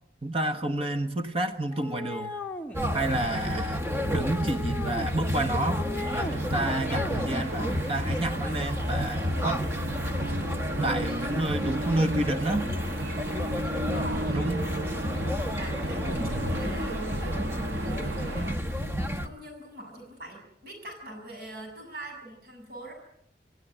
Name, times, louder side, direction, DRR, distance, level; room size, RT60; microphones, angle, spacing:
voice 1, 0.2-2.3 2.9-3.9 4.1-9.6 10.8-12.7 14.3-14.6 16.1-16.6, right 1 dB, 35° right, 1.4 m, -30 dB
sound 1, 1.7-2.8 3.8-5.1 5.5-6.4 6.7-7.2, left 2 dB, 10° left, 1.4 m, -37 dB
sound 2, 2.7-19.3, equal, 15° right, 1.1 m, -31 dB
sound 3, 6.2-18.6, right 1 dB, 80° right, 1.2 m, -36 dB
voice 2, 13.7-14.6 15.5-22.9, right 1 dB, 60° right, 7.2 m, -41 dB
27.5 x 16.0 x 9.3 m
head